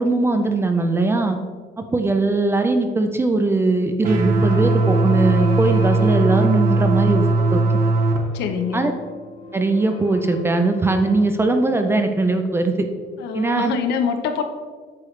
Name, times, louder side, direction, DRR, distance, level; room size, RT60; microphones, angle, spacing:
voice 1, 0.0-1.4 1.8-7.2 7.5-7.6 8.7-8.9 9.5-12.9 13.3-13.8, right 2 dB, 15° right, 6 dB, 0.4 m, -20 dB
sound 1, 4.0-8.2, right 3 dB, 50° right, 1.2 m, -19 dB
sound 2, 4.4-13.1, left 1 dB, 50° left, 1.8 m, -41 dB
voice 2, 8.3-8.9 13.2-14.4, left 7 dB, 70° left, 6 dB, 0.8 m, -24 dB
8.4 x 6.6 x 3.2 m, 1.5 s
cardioid pair, 170°, 18 cm